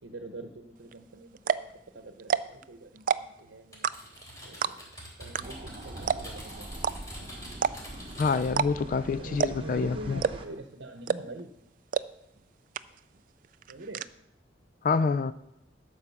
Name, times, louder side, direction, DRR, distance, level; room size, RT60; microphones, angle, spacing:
voice 1, 0.0-3.9 4.4-4.8 5.2-6.7 8.8-11.6 13.7-14.1, right 2 dB, 85° right, 6 dB, 0.8 m, -44 dB
sound 1, 0.9-1.0 1.4-1.7 2.2-2.6 3.0-3.4 3.8-4.2 4.6-5.0 5.3-5.4 5.7-5.8 6.1-6.4 6.8-6.9 7.5-8.0 8.5-9.0 9.4-9.7 10.2-10.6 11.1-11.4 11.9-12.0 12.4-12.5 12.7-13.2 13.4-14.1, right 6 dB, 45° right, 0.3 m, -27 dB
Typing, 3.7-8.6, equal, 20° left, 3.4 m, -46 dB
sound 2, 5.4-10.5, right 1 dB, 30° right, 1.0 m, -43 dB
voice 2, 8.2-10.2 14.8-15.3, left 4 dB, 45° left, 14 dB, 0.3 m, -27 dB
12.0 x 4.9 x 6.9 m, 0.85 s
head